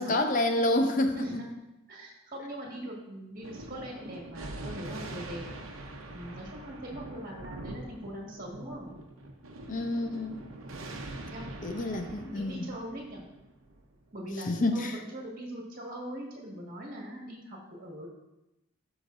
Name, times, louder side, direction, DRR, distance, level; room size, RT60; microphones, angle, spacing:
voice 1, 0.0-1.4 9.7-10.4 11.6-12.7 14.5-15.0, left 1 dB, 40° left, 6 dB, 0.7 m, -28 dB
voice 2, 1.1-1.5 1.9-5.4 6.1-8.9 11.3-13.2 14.1-18.1, equal, 40° right, -2 dB, 1.8 m, -41 dB
Thunder, 3.4-14.3, right 2 dB, 85° right, 0.9 m, -43 dB
13.0 x 5.1 x 2.6 m, 0.95 s
head